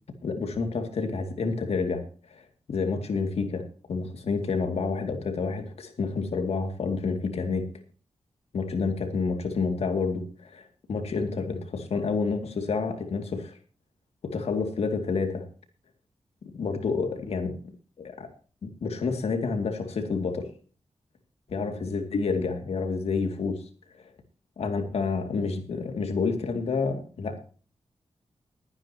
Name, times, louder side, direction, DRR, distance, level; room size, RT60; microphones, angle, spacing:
voice 1, 0.2-2.0 2.3-2.4 2.7-7.7 8.5-13.6 14.2-15.4 16.4-17.6 18.0-18.3 18.6-20.5 21.5-23.6 24.6-27.4, left 4 dB, 80° left, 6 dB, 2.5 m, -29 dB
21.5 x 9.8 x 2.9 m, 0.39 s
wide cardioid pair, 125°, 10 cm